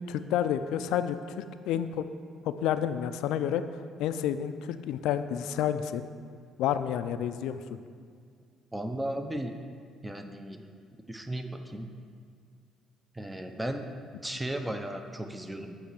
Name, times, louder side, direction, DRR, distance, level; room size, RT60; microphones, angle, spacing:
voice 1, 0.1-2.1 2.5-3.6 4.0-6.0 6.6-7.8, left 9 dB, 80° left, 11 dB, 0.3 m, -30 dB
voice 2, 8.7-9.5 10.0-10.6 11.1-11.9 13.1-13.9 14.2-15.8, right 1 dB, 10° right, 6 dB, 0.6 m, -35 dB
8.1 x 3.2 x 6.3 m, 2.1 s
supercardioid pair, 80°, 0 cm